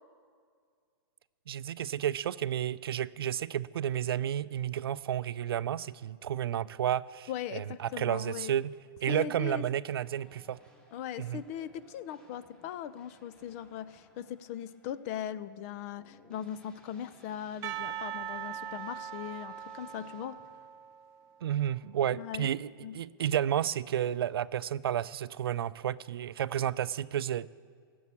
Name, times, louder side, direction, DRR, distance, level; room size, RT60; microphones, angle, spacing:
voice 1, 1.5-8.7 9.0-10.6 11.2-11.4 21.4-27.5, right 10 dB, 80° right, 17 dB, 0.4 m, -31 dB
voice 2, 7.3-8.5 9.1-9.7 10.9-20.4 22.1-22.5 22.8-23.0, left 10 dB, 40° left, 17 dB, 0.5 m, -39 dB
sound 1, 9.9-20.3, equal, 5° left, 1.9 m, -62 dB
Percussion, 17.6-21.5, right 10 dB, 25° right, 0.6 m, -41 dB
15.5 x 7.0 x 8.5 m, 2.1 s
hypercardioid pair, 150°, 12 cm